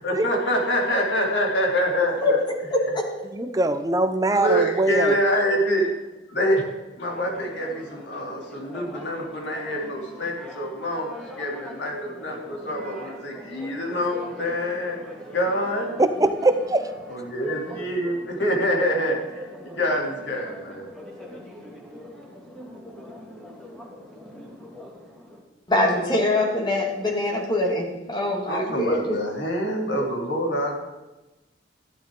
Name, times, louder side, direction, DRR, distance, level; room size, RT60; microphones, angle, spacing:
voice 1, 0.0-2.4 4.3-5.9 6.3-6.6 7.0-11.1 11.4-15.0 15.3-15.9 17.1-20.9 28.5-30.8, equal, 70° left, -1 dB, 3.1 m, -26 dB
voice 2, 2.7-3.1 25.7-29.2, left 1 dB, 25° left, 0 dB, 2.1 m, -23 dB
voice 3, 3.4-5.1 16.0-16.8, right 2 dB, 20° right, 9 dB, 0.8 m, -21 dB
Church bell, 7.1-25.4, left 1 dB, 5° left, 2.3 m, -42 dB
14.0 x 11.5 x 3.9 m, 1.1 s
head